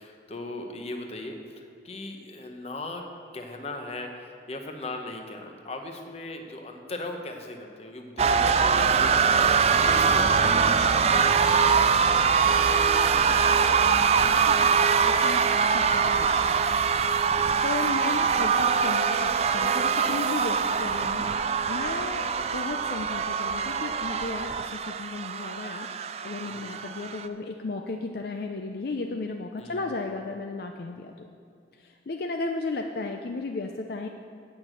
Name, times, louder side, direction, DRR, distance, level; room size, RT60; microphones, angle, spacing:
voice 1, 0.0-3.1 3.3-10.9 26.4-26.7 29.6-30.1, left 2 dB, 35° left, 4 dB, 0.8 m, -38 dB
sound 1, 8.2-27.3, right 6 dB, 35° right, 0.3 m, -23 dB
voice 2, 12.5-13.8 14.2-16.6 17.6-21.3 21.7-31.3 31.8-34.1, left 3 dB, 55° left, 4 dB, 0.4 m, -35 dB
8.6 x 6.0 x 7.8 m, 2.4 s
head